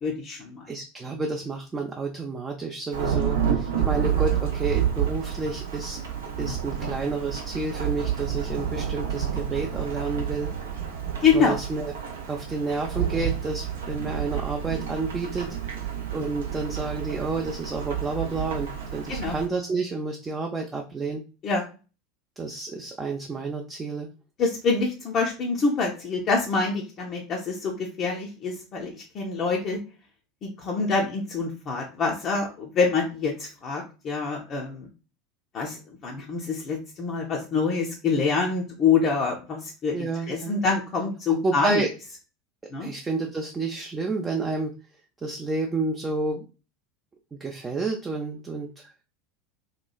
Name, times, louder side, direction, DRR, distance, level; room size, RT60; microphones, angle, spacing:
voice 1, 0.0-0.6 11.2-11.6 19.1-19.4 21.4-21.6 24.4-29.8 30.4-34.9 35.5-41.8 42.7-42.9, left 4 dB, 40° left, -1 dB, 0.5 m, -26 dB
voice 2, 0.7-6.0 6.4-10.5 11.3-11.9 12.3-15.6 16.1-21.2 22.4-24.1 39.9-40.6 41.4-41.9 42.8-44.7 45.2-46.4 47.3-49.0, right 3 dB, 20° right, 1 dB, 0.4 m, -30 dB
Thunderstorm / Rain, 2.9-19.5, right 8 dB, 70° right, 0.5 m, -29 dB
2.9 x 2.2 x 2.2 m, 0.33 s
figure-of-eight pair, 75°, 0 cm